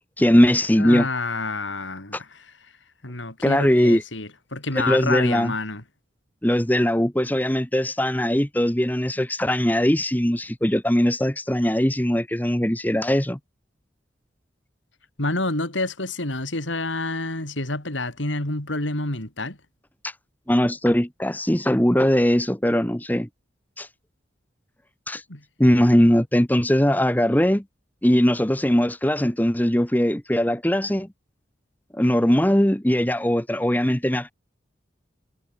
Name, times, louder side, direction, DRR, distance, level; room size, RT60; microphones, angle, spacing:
voice 1, 0.2-1.1 3.4-4.0 4.7-5.5 6.4-13.4 20.0-20.1 20.5-23.3 23.8-23.9 25.1-25.2 25.6-27.6 28.0-31.1 31.9-34.3, equal, 10° left, 1.1 m, -20 dB
voice 2, 0.8-2.5 3.0-5.8 15.2-19.6 25.3-25.4, left 2 dB, 85° left, 4.9 m, -28 dB
head